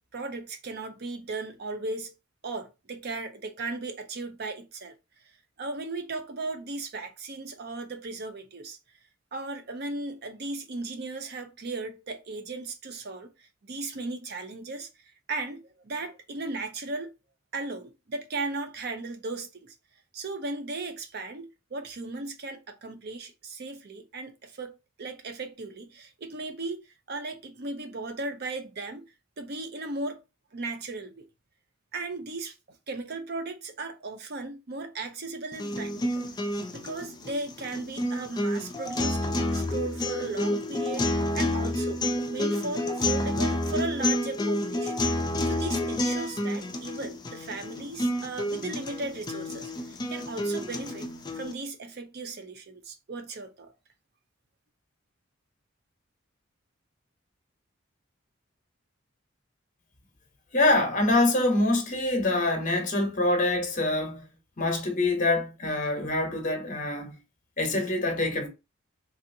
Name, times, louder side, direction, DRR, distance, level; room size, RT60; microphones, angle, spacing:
voice 1, 0.1-2.1 2.4-4.9 5.6-8.8 9.3-14.9 15.3-17.1 17.5-19.7 20.1-26.8 27.1-29.0 29.4-30.2 30.5-31.3 31.9-32.5 32.9-36.2 36.7-39.2 39.5-42.0 42.3-44.9 45.4-51.1 51.4-53.7, right 3 dB, 55° right, 0.6 m, -36 dB
sound 1, 35.5-51.5, left 1 dB, 20° left, 0.4 m, -29 dB
voice 2, 60.5-64.2 64.6-67.2 67.6-68.5, left 2 dB, 40° left, 0.9 m, -25 dB
3.3 x 2.7 x 2.6 m
head